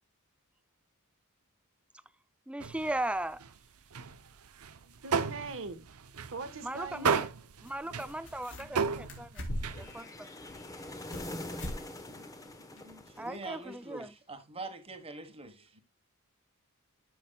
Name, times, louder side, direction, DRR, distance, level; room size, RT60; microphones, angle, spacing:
voice 1, 2.5-3.4 6.6-7.3 7.6-9.5 9.7-10.3 13.2-14.1, right 1 dB, 5° right, 0.4 m, -37 dB
sound 1, 2.6-3.6 3.9-10.0, right 5 dB, 85° right, 0.7 m, -34 dB
voice 2, 4.8-5.9 6.3-7.1 8.6-9.1 9.3-10.1 11.7-13.3 15.4-15.8, right 3 dB, 60° right, 1.4 m, -45 dB
sound 2, 5.9-6.0 7.6-7.7 8.0-8.8 9.1-9.9 10.4-11.3 11.6-11.8 12.1-12.2 12.8-12.9, equal, 60° left, 3.3 m, -40 dB
sound 3, 9.6-13.8, left 1 dB, 15° left, 1.1 m, -44 dB
voice 3, 13.1-15.8, right 3 dB, 25° right, 1.4 m, -44 dB
12.5 x 6.2 x 2.3 m
head